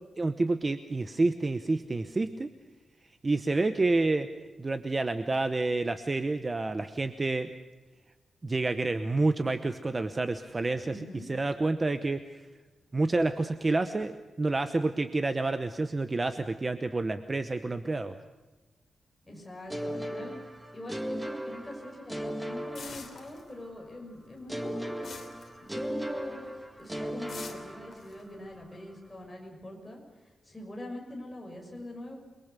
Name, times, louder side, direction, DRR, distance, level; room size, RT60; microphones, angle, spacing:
voice 1, 0.2-2.5 3.2-4.3 4.6-7.5 8.4-11.0 11.3-12.4 12.9-18.1, right 2 dB, 25° right, 9 dB, 0.9 m, -29 dB
voice 2, 10.8-11.3 19.3-20.4 20.7-25.1 25.6-26.4 26.8-32.1, left 1 dB, 10° left, 0 dB, 6.3 m, -43 dB
sound 1, 19.7-23.6 24.5-28.4, equal, 5° right, 1.8 m, -37 dB
sound 2, 22.7-23.9 24.2-26.2 26.5-26.8 27.3-29.2, left 5 dB, 50° left, 3.1 m, -46 dB
28.5 x 22.0 x 6.8 m, 1.2 s
wide cardioid pair, 170°, 0 cm